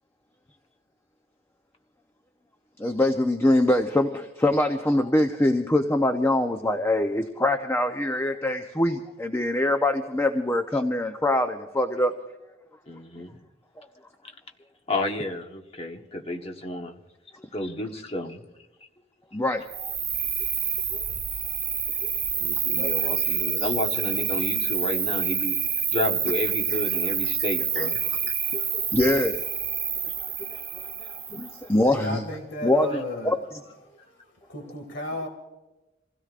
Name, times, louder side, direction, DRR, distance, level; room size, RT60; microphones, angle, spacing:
voice 1, 2.8-12.1 17.4-17.5 19.3-19.9 20.9-21.0 22.8-22.9 23.6-23.7 26.7-26.8 27.7-27.9 28.2-29.4 30.0-32.2 32.6-33.6, left 1 dB, 15° left, 6 dB, 0.6 m, -24 dB
voice 2, 12.9-13.3 14.9-17.0 17.5-18.4 22.4-25.6 25.9-28.0, left 1 dB, 30° left, 3 dB, 1.3 m, -31 dB
Cricket, 19.7-31.6, right 7 dB, 25° right, 1.4 m, -27 dB
voice 3, 31.8-33.4 34.1-34.2 34.5-35.3, left 2 dB, 70° left, 3 dB, 2.1 m, -33 dB
27.5 x 16.5 x 2.5 m, 1.1 s
head